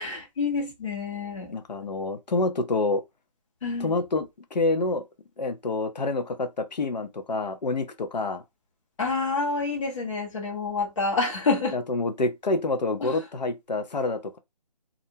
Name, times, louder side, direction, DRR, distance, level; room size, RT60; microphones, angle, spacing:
voice 1, 0.0-1.6 3.6-3.9 9.0-11.8 13.0-13.2, left 4 dB, 50° left, 1.2 m, -28 dB
voice 2, 1.5-3.0 3.8-5.1 5.4-8.4 11.7-14.4, left 2 dB, 80° left, 0.8 m, -27 dB
2.6 x 2.2 x 2.7 m
hypercardioid pair, 165°, 21 cm